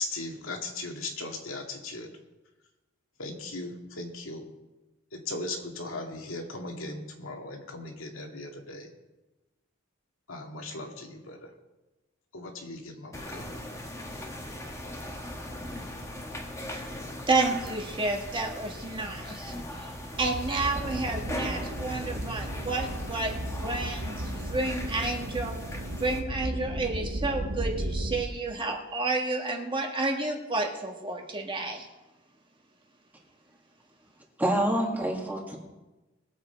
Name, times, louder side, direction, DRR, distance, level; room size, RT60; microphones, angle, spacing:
voice 1, 0.0-2.1 3.2-4.4 5.1-8.9 10.3-11.5 12.3-13.4, left 2 dB, 85° left, 2 dB, 2.2 m, -38 dB
sound 1, 13.1-26.2, left 1 dB, 15° left, 1.6 m, -39 dB
voice 2, 17.3-19.9 20.2-23.4 23.6-25.5 26.0-31.9, right 3 dB, 25° right, 1 dB, 1.7 m, -30 dB
sound 2, 20.1-28.2, right 1 dB, 80° right, 1.2 m, -35 dB
voice 3, 34.4-35.6, right 1 dB, 10° right, -1 dB, 2.2 m, -27 dB
21.0 x 7.8 x 4.6 m, 1.1 s
head